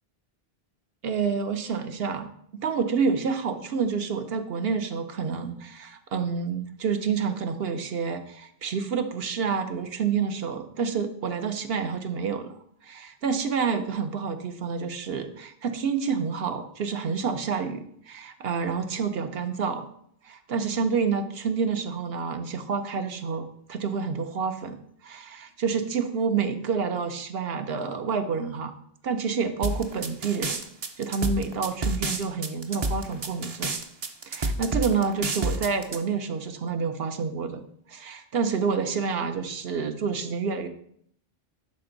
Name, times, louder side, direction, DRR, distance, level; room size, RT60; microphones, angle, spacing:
voice 1, 1.0-12.5 12.8-19.9 20.2-28.8 29.0-30.6 31.0-33.7 34.3-37.6 37.9-40.7, right 5 dB, 75° right, 8 dB, 1.0 m, -28 dB
sound 1, 29.6-36.0, right 2 dB, 40° right, 0.7 m, -29 dB
11.5 x 4.3 x 3.9 m, 0.67 s
omnidirectional pair, 1.0 m